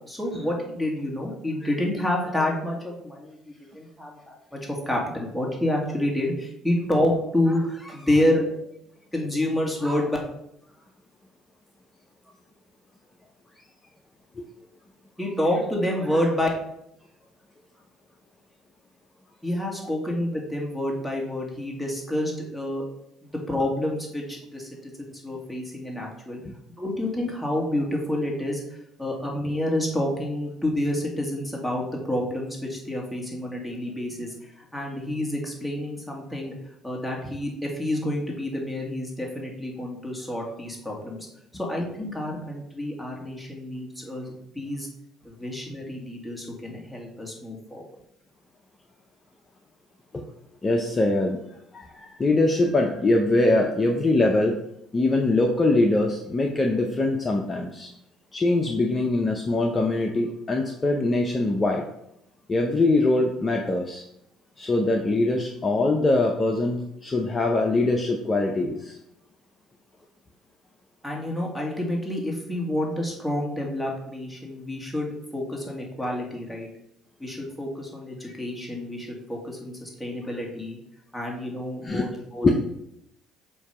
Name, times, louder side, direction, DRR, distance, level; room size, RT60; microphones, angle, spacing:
voice 1, 0.1-8.4 9.1-10.2 15.2-16.5 19.4-22.9 23.2-24.9 25.2-26.4 26.8-28.6 29.0-41.2 41.5-44.9 45.2-47.8 71.0-76.7 77.2-80.8 81.1-82.5, left 1 dB, ahead, -1 dB, 1.9 m, -28 dB
voice 2, 50.6-51.4 51.7-54.6 54.9-57.9 58.3-61.8 62.5-64.0 64.6-69.0 78.2-78.3 81.8-82.0 82.4-82.5, left 2 dB, 25° left, 2 dB, 0.7 m, -23 dB
7.1 x 2.8 x 4.9 m, 0.78 s
supercardioid pair, 80°, 0 cm